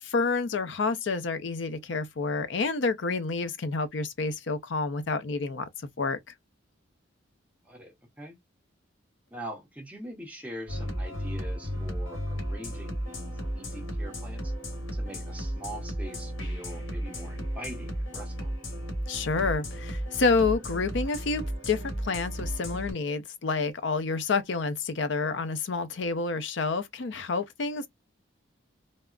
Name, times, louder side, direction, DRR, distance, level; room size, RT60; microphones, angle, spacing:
voice 1, 0.0-5.7 6.0-6.2 19.1-27.9, left 4 dB, 65° left, 0.5 m, -29 dB
voice 2, 7.6-8.4 9.3-14.5 14.9-18.5, right 1 dB, 5° right, 0.9 m, -43 dB
sound 1, 10.7-22.9, equal, 85° left, 1.3 m, -34 dB
3.4 x 2.0 x 2.3 m
head